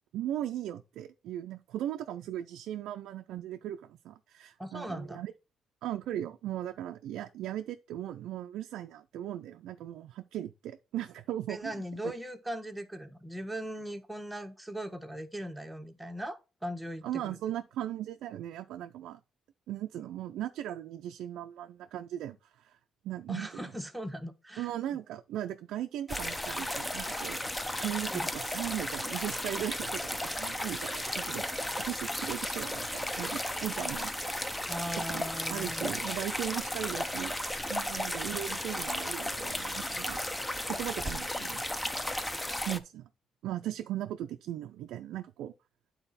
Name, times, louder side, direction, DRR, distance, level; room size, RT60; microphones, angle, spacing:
voice 1, 0.1-5.3 5.8-11.9 17.0-19.2 19.7-22.8 23.0-23.7 24.6-27.4 27.8-34.5 35.1-37.4 37.7-40.2 40.6-41.6 42.7-43.1 43.4-45.5, right 12 dB, 85° right, 0.4 m, -38 dB
voice 2, 4.6-5.3 11.5-17.4 23.3-24.7 28.1-28.3 34.7-35.9 42.5-42.6, equal, 5° right, 1.1 m, -39 dB
sound 1, 26.1-42.8, left 1 dB, 10° left, 0.7 m, -34 dB
8.9 x 4.0 x 4.1 m
cardioid pair, 90°, 0 cm